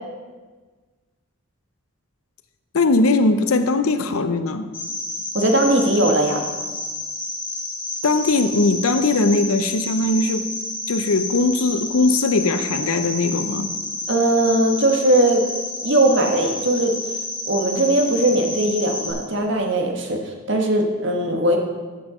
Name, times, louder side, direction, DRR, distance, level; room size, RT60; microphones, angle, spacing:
voice 1, 2.7-4.7 8.0-10.5 10.9-13.7, left 3 dB, 80° left, 0.7 m, -20 dB
Cricket, 4.7-19.1, left 2 dB, 25° left, 3.6 m, -30 dB
voice 2, 5.3-6.4 14.1-15.4 15.8-16.9 17.5-21.6, right 1 dB, 55° right, 1.3 m, -19 dB
14.5 x 5.6 x 5.0 m
head